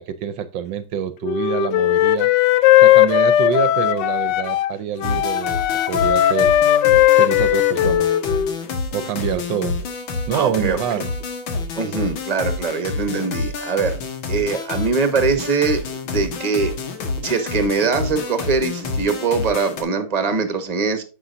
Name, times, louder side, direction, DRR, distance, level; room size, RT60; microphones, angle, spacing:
voice 1, 0.0-2.3 2.8-6.5 7.1-8.2 8.9-9.8 10.3-11.1, right 9 dB, 75° right, 1.3 m, -26 dB
Wind instrument woodwind instrument, 1.2-4.7 5.0-8.5, left 12 dB, 70° left, 1.1 m, -17 dB
sound 1, 5.0-19.8, left 3 dB, 90° left, 2.3 m, -28 dB
voice 2, 10.3-10.8 11.7-14.0 14.3-16.7 17.2-21.0, right 4 dB, 25° right, 1.2 m, -22 dB
9.8 x 6.9 x 2.5 m
omnidirectional pair, 2.2 m